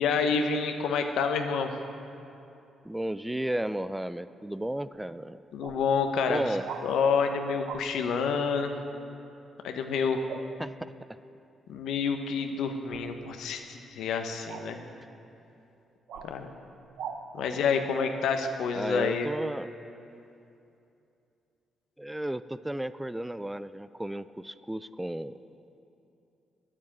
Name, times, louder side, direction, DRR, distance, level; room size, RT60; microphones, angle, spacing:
voice 1, 0.0-1.7 5.5-6.4 6.8-8.7 9.6-10.2 11.7-14.8 16.2-16.5 17.3-19.3, left 5 dB, 80° left, 6 dB, 0.8 m, -28 dB
voice 2, 2.8-5.4 6.3-6.7 10.6-10.9 17.5-17.6 18.7-19.7 22.0-25.4, right 1 dB, 10° right, 14 dB, 0.3 m, -33 dB
sound 1, 4.9-5.0 5.6-5.8 6.6-6.9 7.6-7.8 10.3-10.5 12.9-13.1 14.5-14.7 16.1-16.3 17.0-17.2 18.4-18.5, right 7 dB, 80° right, 0.7 m, -39 dB
9.5 x 7.3 x 8.7 m, 2.7 s
supercardioid pair, 65°, 0 cm